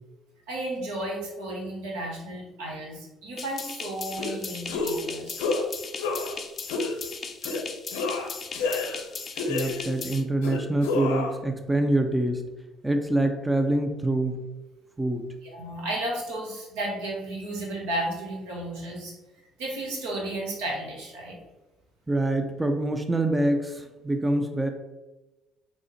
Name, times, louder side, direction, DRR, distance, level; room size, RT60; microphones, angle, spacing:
voice 1, 0.5-5.5 15.4-19.2 19.6-21.4, right 1 dB, 80° right, -2 dB, 1.0 m, -33 dB
sound 1, 3.4-10.2, left 5 dB, 45° left, 0.4 m, -38 dB
sound 2, 4.2-4.4 4.7-5.0 5.4-5.6 6.0-6.4 6.7-7.0 7.4-7.6 7.9-9.1 9.4-10.0 10.4-11.4, left 3 dB, 80° left, 0.7 m, -29 dB
voice 2, 9.5-12.4 12.8-14.4 15.0-15.2 22.1-24.7, right 1 dB, 15° right, 6 dB, 0.4 m, -25 dB
3.6 x 2.0 x 4.1 m, 1.1 s
hypercardioid pair, 55°, 0 cm